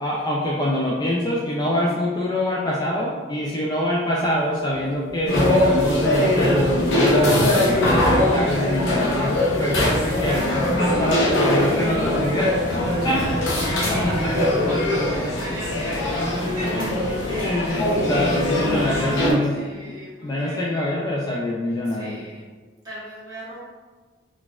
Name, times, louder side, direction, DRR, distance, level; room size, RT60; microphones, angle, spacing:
voice 1, 0.0-12.5 13.0-13.2 17.3-19.5 20.2-22.2, left 1 dB, 20° left, -5 dB, 0.3 m, -25 dB
sound 1, 4.2-19.2, equal, 40° left, 1.1 m, -40 dB
sound 2, 5.3-19.3, left 1 dB, 90° left, 0.7 m, -21 dB
voice 2, 12.7-17.7 19.4-20.9 21.8-22.5 22.8-23.6, right 1 dB, 20° right, -10 dB, 1.1 m, -37 dB
4.0 x 2.3 x 2.3 m, 1.4 s
head